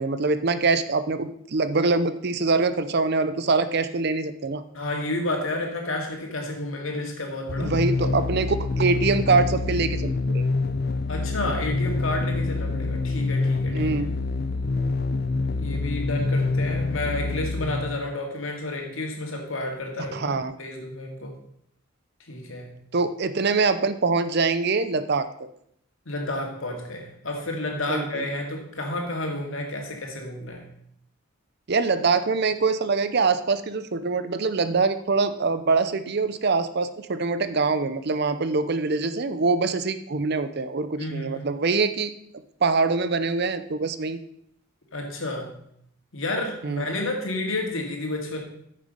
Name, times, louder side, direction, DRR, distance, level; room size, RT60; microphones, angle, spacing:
voice 1, 0.0-4.6 7.6-10.4 13.7-14.1 20.1-20.5 22.9-25.3 27.9-28.2 31.7-42.1 42.6-44.2 46.6-46.8, right 4 dB, 50° right, 12 dB, 0.6 m, -24 dB
voice 2, 4.7-7.7 11.1-13.9 15.5-21.4 22.3-22.8 26.1-30.7 41.0-41.4 44.9-45.6 46.1-48.4, left 1 dB, 75° left, 2 dB, 2.2 m, -31 dB
sound 1, 7.5-18.2, left 3 dB, 50° left, 0.5 m, -26 dB
9.4 x 6.6 x 5.2 m, 0.70 s
head